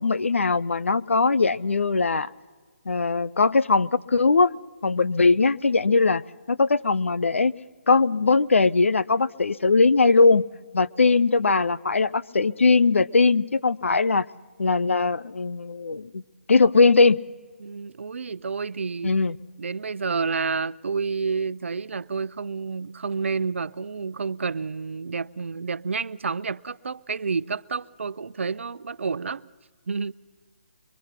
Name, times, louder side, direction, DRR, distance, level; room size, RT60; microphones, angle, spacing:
voice 1, 0.0-2.3 2.9-4.5 4.8-7.5 7.9-10.5 10.7-14.3 14.6-16.2 16.5-17.2 19.0-19.4, left 4 dB, 90° left, 0.7 m, -20 dB
voice 2, 17.6-19.1 19.6-29.5 29.9-30.1, right 5 dB, 75° right, 0.6 m, -29 dB
23.5 x 23.0 x 5.8 m
hypercardioid pair, 160°, 7 cm